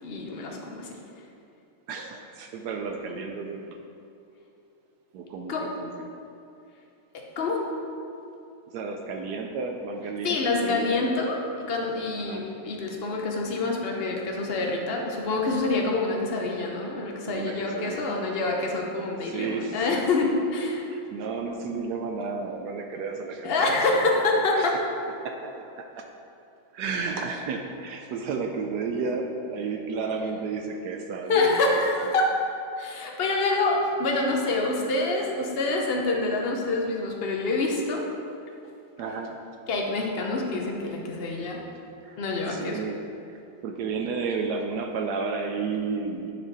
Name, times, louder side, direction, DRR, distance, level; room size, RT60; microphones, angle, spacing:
voice 1, 0.0-1.0 5.5-5.6 7.1-7.6 10.2-20.8 23.4-24.7 31.3-32.3 32.8-38.0 39.7-41.6 42.2-42.8, left 3 dB, 65° left, 0 dB, 0.5 m, -26 dB
voice 2, 1.9-3.8 5.1-6.1 8.7-11.1 12.2-12.5 17.3-18.2 19.2-20.0 20.9-24.1 24.5-24.8 25.2-26.1 26.7-32.1 39.0-39.4 42.0-42.2 42.5-43.0 43.3-46.3, right 4 dB, 75° right, 3 dB, 0.9 m, -32 dB
9.7 x 5.0 x 4.1 m, 2.6 s
omnidirectional pair, 2.2 m